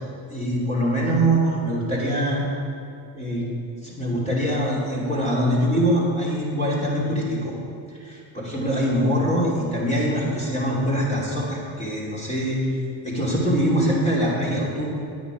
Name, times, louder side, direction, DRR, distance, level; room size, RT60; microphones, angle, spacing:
voice 1, 0.3-2.4 3.1-3.4 3.8-7.5 8.0-12.6 13.0-14.9, equal, 15° left, -7 dB, 2.9 m, -23 dB
9.6 x 8.8 x 5.0 m, 2.6 s
supercardioid pair, 75°, 50 cm